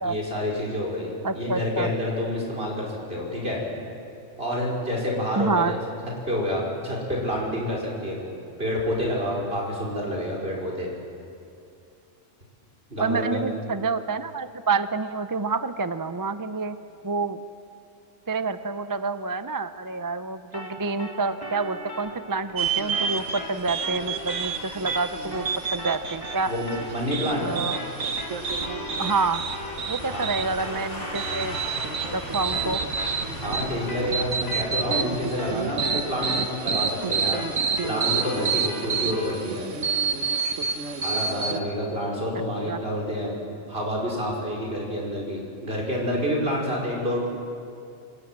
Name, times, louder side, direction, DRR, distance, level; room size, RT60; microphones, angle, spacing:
voice 1, 0.0-3.6 4.4-5.8 6.2-8.3 8.6-10.9 12.9-13.5 26.5-27.6 30.1-30.3 33.4-37.4 37.8-39.6 41.0-43.3 43.7-47.3, equal, 50° right, -3 dB, 5.5 m, -28 dB
voice 2, 1.2-1.9 5.4-5.8 13.0-16.8 17.0-17.4 18.3-26.5 27.4-27.8 29.0-29.5 29.9-31.6 32.1-32.8 39.6-39.8 42.7-42.8, right 4 dB, 25° right, 11 dB, 0.5 m, -28 dB
sound 1, 20.5-29.9 30.1-39.4, left 1 dB, 15° left, 3.0 m, -39 dB
sound 2, 22.6-41.6, right 5 dB, 80° right, 1.6 m, -29 dB
sound 3, 22.7-37.5 37.9-38.0, left 1 dB, 80° left, 4.4 m, -40 dB
27.5 x 24.0 x 7.5 m, 2.5 s
omnidirectional pair, 1.3 m